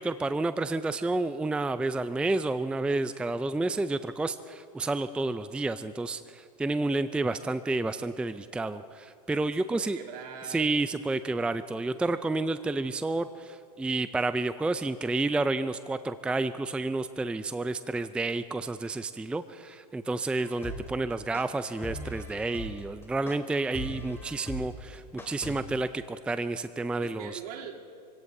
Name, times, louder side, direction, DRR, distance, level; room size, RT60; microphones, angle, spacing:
voice 1, 0.0-10.0 10.5-27.4, right 2 dB, 5° right, 12 dB, 0.4 m, -30 dB
voice 2, 9.5-10.7 27.0-27.7, right 7 dB, 65° right, -1 dB, 3.2 m, -42 dB
sound 1, 20.4-25.6, left 1 dB, 10° left, 2.7 m, -40 dB
27.5 x 17.0 x 2.7 m, 2.5 s
hypercardioid pair, 100°, 21 cm